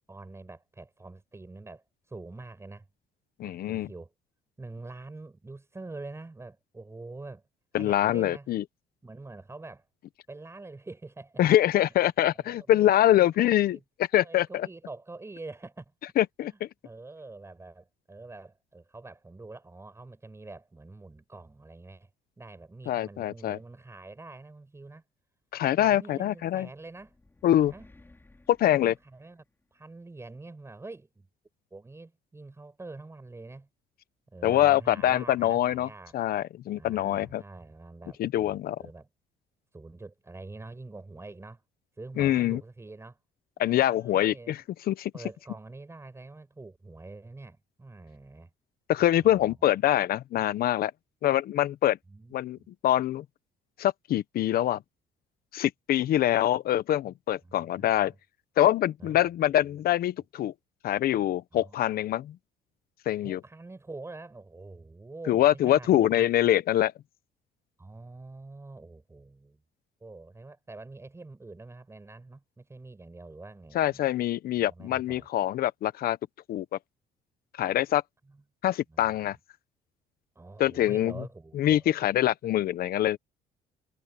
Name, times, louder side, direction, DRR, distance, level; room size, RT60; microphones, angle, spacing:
voice 1, 0.1-2.9 3.4-4.1 4.6-7.4 7.7-8.5 9.0-9.9 10.3-11.4 12.3-13.8 14.2-16.1 16.4-22.1 22.4-25.0 25.8-27.1 27.7-27.9 28.7-29.4 29.7-31.3 31.7-33.7 34.3-36.2 36.8-39.1 39.7-41.6 42.0-43.2 43.6-44.6 45.1-48.5 49.2-49.7 52.1-52.7 57.4-58.2 59.0-60.0 61.5-62.0 63.2-66.3 67.8-69.6 70.0-74.0 74.6-75.3 78.3-78.4 78.9-79.3 80.3-82.1, right 3 dB, 15° right, 6.5 m, -46 dB
voice 2, 3.4-3.9 7.7-8.6 11.4-14.7 16.2-16.7 22.9-23.6 25.5-26.7 27.4-27.7 28.5-28.9 34.4-35.9 36.1-37.4 38.2-38.8 42.2-42.6 43.6-44.6 44.9-45.1 48.9-50.9 51.2-52.0 52.3-53.2 53.8-54.8 55.5-58.1 58.6-60.5 60.8-62.4 63.1-63.4 65.3-66.9 73.7-76.2 76.5-76.6 77.6-78.0 78.6-79.4 80.6-81.1 81.5-83.2, left 12 dB, 60° left, 1.0 m, -24 dB
sound 1, 26.4-29.8, left 2 dB, 15° left, 5.4 m, -58 dB
cardioid pair, 110°, 17 cm